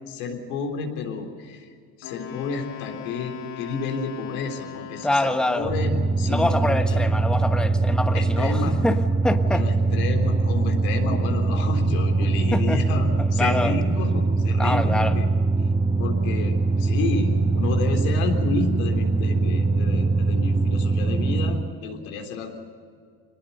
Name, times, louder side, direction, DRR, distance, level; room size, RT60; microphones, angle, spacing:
voice 1, 0.1-1.7 2.0-7.1 8.1-8.8 9.4-15.3 16.0-22.6, left 4 dB, 80° left, 3 dB, 3.7 m, -30 dB
Wind instrument woodwind instrument, 2.0-5.7, left 8 dB, 60° left, 4.2 m, -39 dB
voice 2, 5.0-5.7 6.3-9.0 9.2-9.6 12.5-12.8 13.2-13.7 14.6-15.1, left 1 dB, ahead, 7 dB, 1.4 m, -25 dB
sound 1, 5.6-21.7, right 3 dB, 15° right, 1.0 m, -22 dB
23.0 x 20.0 x 6.8 m, 2.1 s
supercardioid pair, 80°, 41 cm